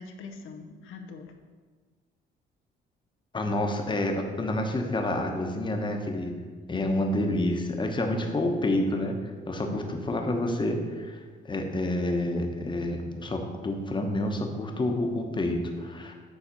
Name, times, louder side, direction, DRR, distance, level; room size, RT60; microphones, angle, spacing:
voice 1, 0.0-1.3 8.2-8.4 9.6-10.1, left 4 dB, 85° left, 4 dB, 0.7 m, -43 dB
voice 2, 3.3-6.3 6.7-16.1, left 1 dB, 25° left, 3 dB, 1.0 m, -28 dB
7.3 x 3.9 x 5.3 m, 1.5 s
cardioid pair, 90°, 20 cm